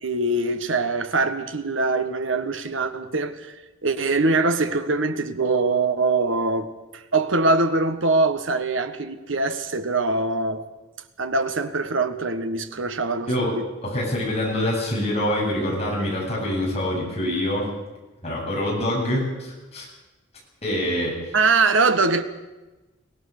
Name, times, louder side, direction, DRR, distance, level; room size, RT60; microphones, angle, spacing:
voice 1, 0.0-3.5 3.8-10.7 11.2-13.7 21.3-22.2, right 3 dB, 75° right, 1.4 m, -23 dB
voice 2, 13.8-17.7 18.2-19.9 20.6-21.2, left 1 dB, 30° left, 7.6 m, -25 dB
23.0 x 18.0 x 6.7 m
head